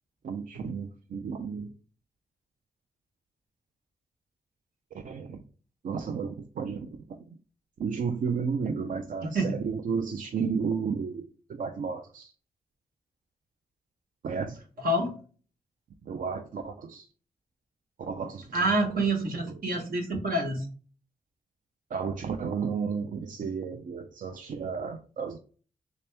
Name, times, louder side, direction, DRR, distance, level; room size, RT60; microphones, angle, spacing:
voice 1, 0.2-1.7 5.0-5.4 5.8-7.0 7.8-12.3 14.2-14.6 16.1-17.1 18.0-18.7 19.5-19.6 21.9-25.4, right 5 dB, 65° right, 0.4 m, -32 dB
voice 2, 14.8-15.1 18.5-20.7, right 1 dB, 85° right, 1.2 m, -27 dB
3.3 x 2.9 x 3.3 m
cardioid pair, 60°, 15 cm